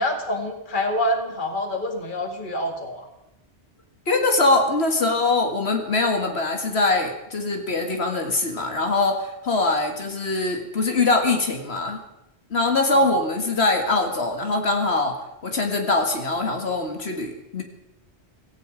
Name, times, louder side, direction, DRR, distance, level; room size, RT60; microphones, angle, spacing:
voice 1, 0.0-3.1 12.9-13.1, left 1 dB, 50° left, 5 dB, 2.0 m, -26 dB
voice 2, 4.1-12.0 12.5-15.2 15.4-17.6, left 2 dB, 75° left, 4 dB, 2.1 m, -22 dB
17.5 x 16.5 x 5.0 m, 0.90 s
omnidirectional pair, 1.1 m